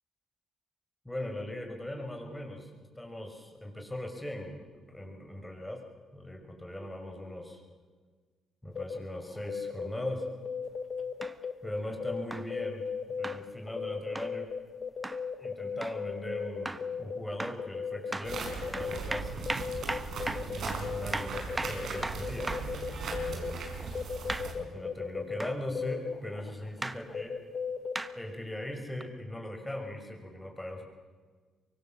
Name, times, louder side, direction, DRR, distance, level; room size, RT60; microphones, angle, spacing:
voice 1, 1.0-5.8 6.1-7.6 8.6-10.3 11.6-14.5 15.4-19.4 20.5-22.6 22.9-23.7 24.6-27.3 28.2-30.8, left 1 dB, 10° left, 3 dB, 5.9 m, -40 dB
sound 1, 8.8-9.0 9.4-11.5 12.0-12.2 12.5-13.3 13.7-17.2 17.6-19.0 19.5-21.1 21.3-23.5 23.9-27.9, left 6 dB, 45° left, 1.6 m, -36 dB
sound 2, 11.2-11.4 12.3-12.5 13.2-13.4 14.2-14.3 15.0-15.2 15.8-16.0 16.7-16.9 17.4-17.6 18.1-18.3 18.7-22.7 24.3-24.5 25.4-25.6 26.8-27.0 28.0-28.1 29.0-29.1, right 2 dB, 15° right, 1.2 m, -37 dB
sound 3, 18.2-24.5, right 4 dB, 65° right, 5.5 m, -38 dB
24.0 x 23.5 x 7.4 m, 1.5 s
cardioid pair, 90°, 0 cm